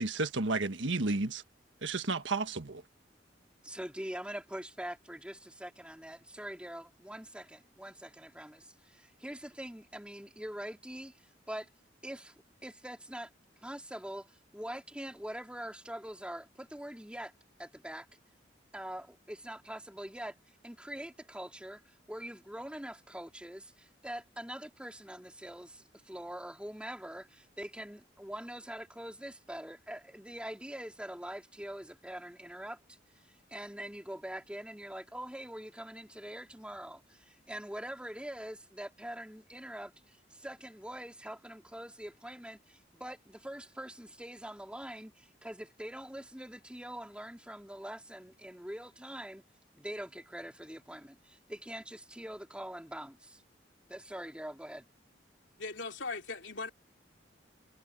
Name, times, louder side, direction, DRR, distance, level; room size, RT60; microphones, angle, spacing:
voice 1, 0.0-1.4 1.8-2.8, right 3 dB, 80° right, 1.5 m, -32 dB
voice 2, 3.6-11.7 12.0-12.3 12.6-13.3 13.6-17.3 17.6-18.1 18.7-20.4 20.6-32.8 33.5-49.4 49.7-53.4 53.9-54.9, right 1 dB, 5° right, 3.6 m, -44 dB
voice 3, 55.6-56.7, left 3 dB, 75° left, 3.2 m, -39 dB
head